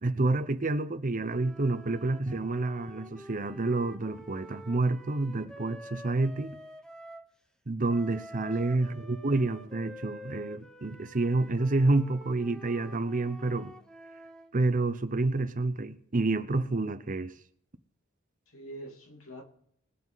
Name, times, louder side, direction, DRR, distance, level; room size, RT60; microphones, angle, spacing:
voice 1, 0.0-6.6 7.7-13.7 14.5-17.3, right 2 dB, 40° right, 0.8 m, -29 dB
sound 1, 1.2-7.3 7.9-14.5, equal, 5° left, 1.0 m, -48 dB
voice 2, 8.3-8.8 18.5-19.4, right 1 dB, 85° left, 2.7 m, -46 dB
21.5 x 7.3 x 4.1 m
head